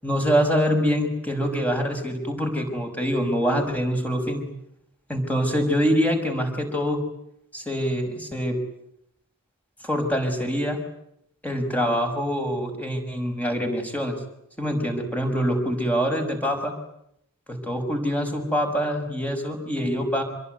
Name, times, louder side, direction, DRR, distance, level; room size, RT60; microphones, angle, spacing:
voice 1, 0.0-4.4 5.1-7.0 7.5-8.6 9.8-10.8 11.4-14.2 14.6-16.7 17.5-20.2, equal, 5° left, 4 dB, 6.0 m, -25 dB
27.5 x 22.5 x 9.5 m, 0.75 s
head